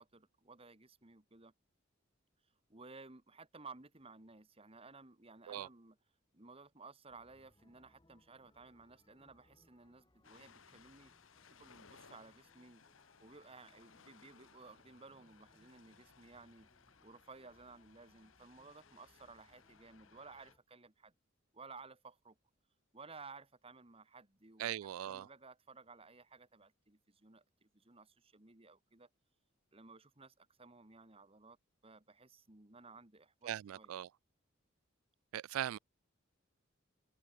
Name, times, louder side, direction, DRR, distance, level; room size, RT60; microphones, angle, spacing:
voice 1, 0.0-1.5 2.7-6.0 6.3-11.1 11.6-12.8 13.2-16.7 17.0-21.1 21.5-22.4 22.9-24.8 25.0-29.1 29.7-31.6 31.8-33.9, right 4 dB, 30° right, 1.7 m, -56 dB
sound 1, 7.1-20.6, left 1 dB, 20° left, 3.2 m, -72 dB
Ocean, 10.2-20.5, left 6 dB, 70° left, 1.3 m, -64 dB
voice 2, 24.6-25.3 33.4-34.1 35.3-35.8, right 11 dB, 90° right, 0.3 m, -40 dB
open air
head